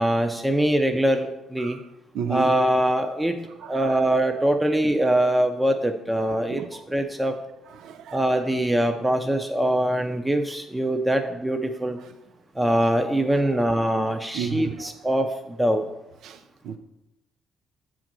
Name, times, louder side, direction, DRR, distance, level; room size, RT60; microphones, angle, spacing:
voice 1, 0.0-1.8 2.3-3.4 3.7-6.6 6.9-7.4 8.1-12.0 12.6-15.8, right 1 dB, 5° right, 0.6 m, -23 dB
voice 2, 2.1-2.5 3.6-3.9 6.5-6.8 7.8-8.2 14.3-14.9 16.2-16.4 16.6-16.8, right 7 dB, 80° right, 0.5 m, -32 dB
7.0 x 3.8 x 6.1 m
cardioid pair, 90°, 0 cm